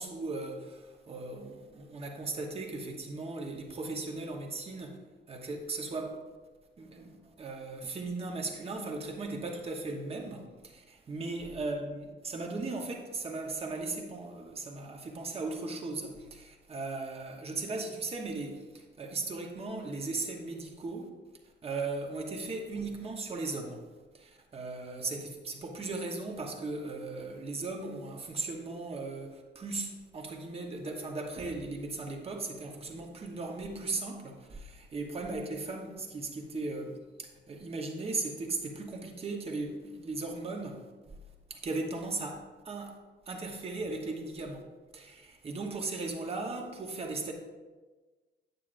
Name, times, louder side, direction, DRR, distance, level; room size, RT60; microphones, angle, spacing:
voice 1, 0.0-5.0 5.3-6.1 6.8-21.1 21.6-23.8 24.1-41.2 41.5-42.9 43.3-44.6 44.9-47.3, right 3 dB, 30° right, 2 dB, 1.0 m, -37 dB
9.3 x 8.3 x 2.6 m, 1.3 s
cardioid pair, 145°, 19 cm